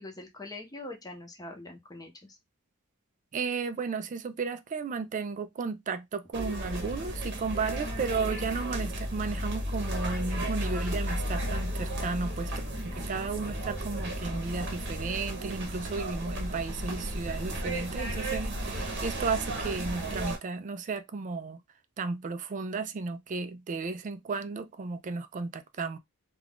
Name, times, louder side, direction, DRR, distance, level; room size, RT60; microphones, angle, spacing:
voice 1, 0.0-2.4, left 2 dB, 20° left, 0.7 m, -43 dB
voice 2, 3.3-12.5 12.8-21.6 22.0-26.0, right 4 dB, 35° right, 0.3 m, -34 dB
sound 1, 6.3-20.4, equal, 55° right, 0.9 m, -34 dB
2.4 x 2.3 x 3.4 m
head